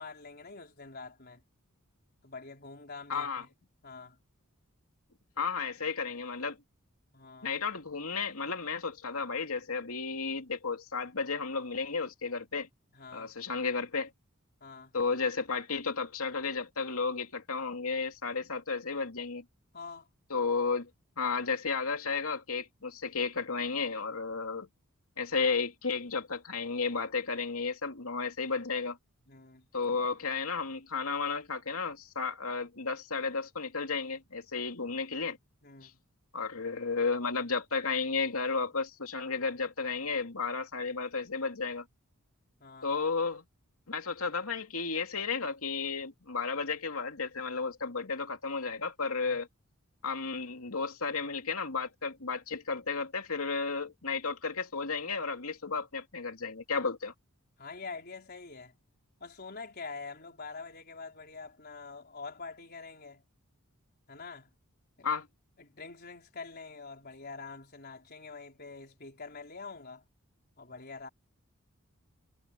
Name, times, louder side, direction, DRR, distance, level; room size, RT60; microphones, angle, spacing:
voice 1, 0.0-1.4 2.2-3.5 3.8-4.2 7.1-7.5 12.9-13.3 14.6-14.9 19.7-20.1 29.3-29.7 35.6-36.0 42.6-42.9 49.3-49.4 57.6-58.8 59.2-63.2 64.1-64.5 65.0-65.1 65.6-70.0 70.6-71.1, left 4 dB, 45° left, 4.4 m, -45 dB
voice 2, 3.1-3.4 5.4-6.6 7.4-12.7 13.1-14.1 14.9-19.4 20.3-20.9 21.2-24.7 25.2-29.0 29.7-35.4 35.8-35.9 36.3-41.8 42.8-43.4 43.9-49.5 50.0-57.1 65.0-65.3, left 4 dB, 75° left, 2.7 m, -33 dB
head